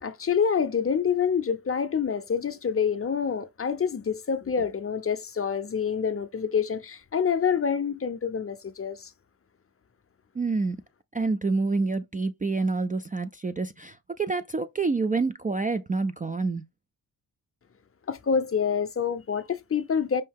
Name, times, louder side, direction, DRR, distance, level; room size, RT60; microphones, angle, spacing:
voice 1, 0.0-9.1 18.1-20.2, left 6 dB, 35° left, 0.6 m, -27 dB
voice 2, 10.4-10.8 11.1-16.6, right 3 dB, 20° right, 0.3 m, -27 dB
5.5 x 2.7 x 3.5 m
cardioid pair, 85°, 40 cm